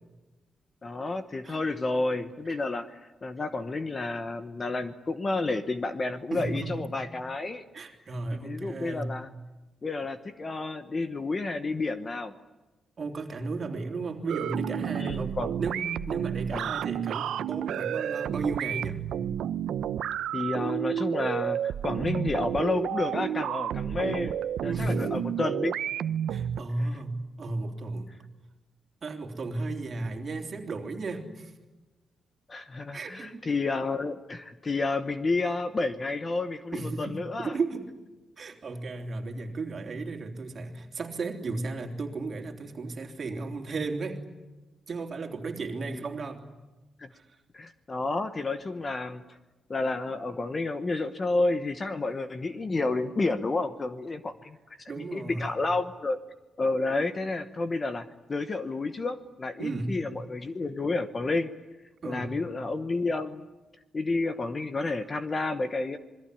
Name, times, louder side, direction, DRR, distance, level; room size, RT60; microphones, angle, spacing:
voice 1, 0.8-7.6 8.3-9.3 9.8-12.3 14.8-15.6 16.5-16.8 20.3-24.4 24.6-25.7 32.5-37.6 45.9-46.0 47.0-47.1 47.5-49.4 49.7-54.6 55.0-56.2 56.6-61.5 62.0-63.5 63.9-66.0, left 3 dB, 25° left, 10 dB, 1.0 m, -30 dB
voice 2, 6.3-6.9 7.7-9.2 13.0-19.0 24.6-25.2 26.3-28.1 29.0-31.5 32.9-33.5 36.7-37.9 38.4-44.2 44.9-46.5 47.1-47.3 54.9-55.5 59.6-60.0 62.0-62.3, right 3 dB, 30° right, 3 dB, 3.5 m, -34 dB
sound 1, 14.3-26.6, right 9 dB, 90° right, 0.8 m, -31 dB
27.5 x 21.5 x 10.0 m, 1.1 s
wide cardioid pair, 180°, 0 cm